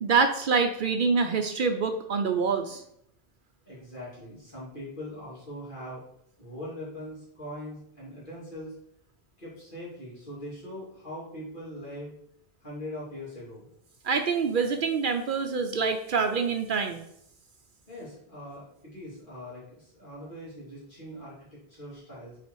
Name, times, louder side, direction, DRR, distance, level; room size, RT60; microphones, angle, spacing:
voice 1, 0.0-2.8 14.0-17.0, right 5 dB, 60° right, 6 dB, 0.7 m, -26 dB
voice 2, 3.6-6.0 6.4-8.8 9.4-12.1 12.6-13.7 17.9-22.4, left 1 dB, 55° left, -7 dB, 2.9 m, -41 dB
5.7 x 4.1 x 4.5 m, 0.72 s
omnidirectional pair, 1.0 m